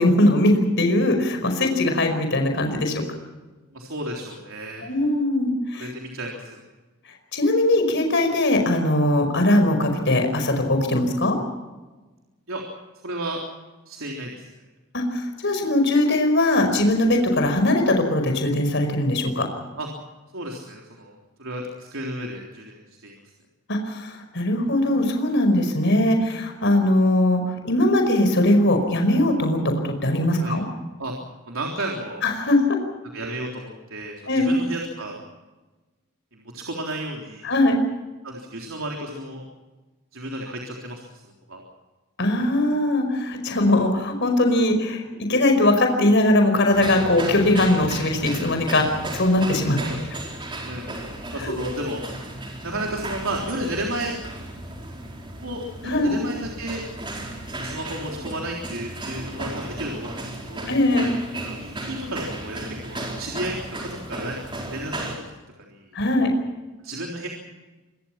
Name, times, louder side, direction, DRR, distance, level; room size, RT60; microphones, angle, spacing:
voice 1, 0.0-3.0 4.8-5.9 7.3-11.4 14.9-19.5 23.7-30.6 32.2-32.8 34.3-34.5 37.4-37.8 42.2-48.9 49.1-49.8 51.4-51.5 55.8-56.1 60.7-61.1 65.9-66.3, left 1 dB, 55° left, 5 dB, 5.1 m, -20 dB
voice 2, 3.7-4.8 5.7-6.6 12.5-12.6 13.0-13.4 13.9-14.5 19.8-19.9 20.3-21.1 21.4-23.1 30.4-30.5 31.0-31.1 31.5-32.2 33.1-35.2 36.3-37.5 38.2-39.4 40.1-41.2 41.5-41.6 49.8-50.0 50.6-51.0 51.3-52.0 52.6-54.2 55.4-56.8 57.5-60.7 61.4-64.4 64.7-65.2 65.7-65.8 66.8-67.3, right 1 dB, 70° right, 0 dB, 3.7 m, -32 dB
sound 1, 46.7-65.2, right 1 dB, 20° right, 4.6 m, -34 dB
26.5 x 21.5 x 5.9 m, 1.2 s
head